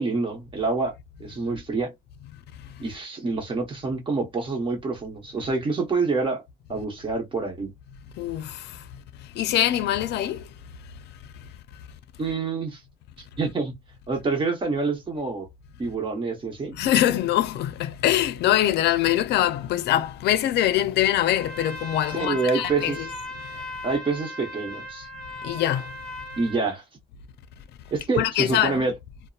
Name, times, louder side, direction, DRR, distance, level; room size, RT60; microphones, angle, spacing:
voice 1, 0.0-1.9 2.8-6.4 6.7-7.7 12.2-12.8 13.4-13.8 14.1-15.5 15.8-16.7 22.2-23.0 23.8-25.1 26.4-26.8 27.9-28.9, right 4 dB, 30° right, 1.0 m, -27 dB
voice 2, 8.2-8.8 9.4-10.4 16.7-23.1 25.4-25.9 28.1-28.9, left 12 dB, 80° left, 0.4 m, -23 dB
Trumpet, 21.3-26.7, left 1 dB, 5° left, 0.8 m, -37 dB
2.7 x 2.0 x 2.3 m
cardioid pair, 135°, 17 cm